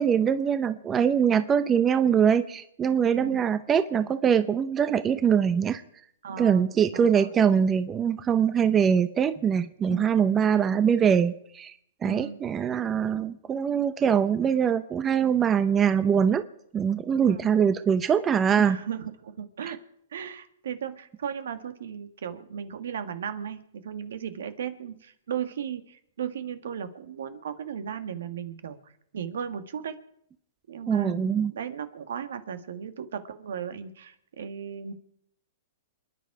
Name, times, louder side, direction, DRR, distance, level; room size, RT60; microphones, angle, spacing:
voice 1, 0.0-5.8 6.4-11.7 12.0-16.4 16.7-18.8 30.9-31.5, right 7 dB, 20° right, 12 dB, 0.7 m, -23 dB
voice 2, 6.2-7.3 9.9-10.8 12.0-12.4 17.3-17.5 18.6-19.8 20.1-30.0 30.7-34.9, right 8 dB, 75° right, 11 dB, 1.6 m, -36 dB
28.0 x 10.0 x 4.8 m, 0.71 s
hypercardioid pair, 145°, 0 cm